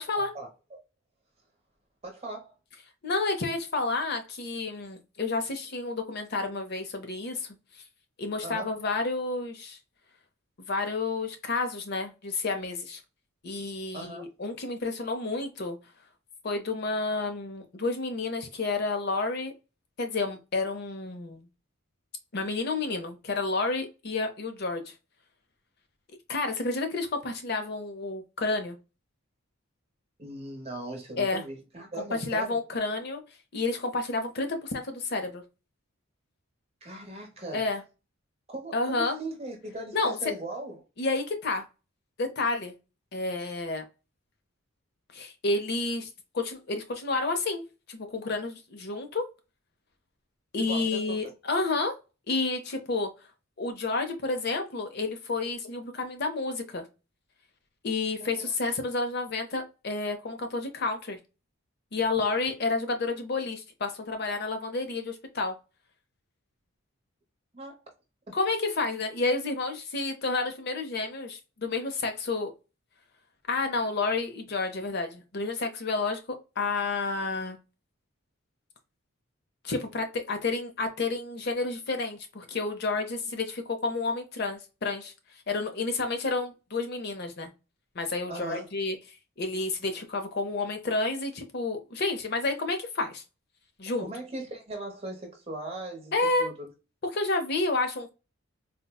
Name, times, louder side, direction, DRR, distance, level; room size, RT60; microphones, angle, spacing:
voice 1, 0.2-0.5 2.0-2.5 8.4-8.7 13.9-14.3 30.2-32.6 36.8-37.7 38.5-40.8 50.6-51.3 58.2-58.5 67.5-67.8 88.3-88.7 94.0-96.7, right 2 dB, 30° right, 0.9 m, -39 dB
voice 2, 3.0-7.6 8.2-9.8 10.6-13.0 13.4-15.8 16.4-19.5 20.0-21.5 22.3-24.9 26.3-28.8 31.2-31.4 32.1-33.2 33.5-35.4 37.5-37.8 38.7-39.2 39.9-40.2 41.0-41.6 42.2-42.7 43.1-43.8 45.1-46.1 46.3-47.6 47.9-49.3 50.5-51.9 52.3-53.1 53.6-56.8 57.8-61.2 61.9-65.5 68.3-72.5 73.5-76.2 76.6-77.6 79.6-85.1 85.5-87.5 88.0-89.0 89.4-93.2 93.8-94.1 96.1-96.5 97.1-98.1, left 3 dB, 50° left, 0.6 m, -30 dB
4.1 x 2.1 x 2.2 m
head